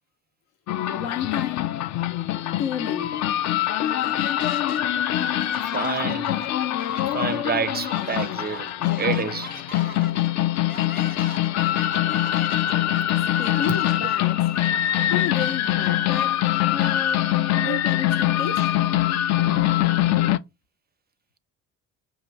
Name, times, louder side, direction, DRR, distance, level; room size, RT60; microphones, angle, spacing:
sound 1, 0.7-20.4, left 13 dB, 45° left, 0.4 m, -23 dB
voice 1, 0.9-1.7 2.6-3.2 7.1-7.2 13.4-14.4 15.1-17.3 17.6-18.7, left 8 dB, 70° left, 0.8 m, -32 dB
sound 2, 3.8-4.8 5.1-17.4, left 3 dB, 25° left, 0.9 m, -40 dB
voice 2, 5.6-6.4 7.1-8.7 9.0-9.5 13.7-13.8 17.5-17.8, right 6 dB, 25° right, 0.5 m, -28 dB
5.6 x 2.6 x 3.2 m
hypercardioid pair, 55°, 38 cm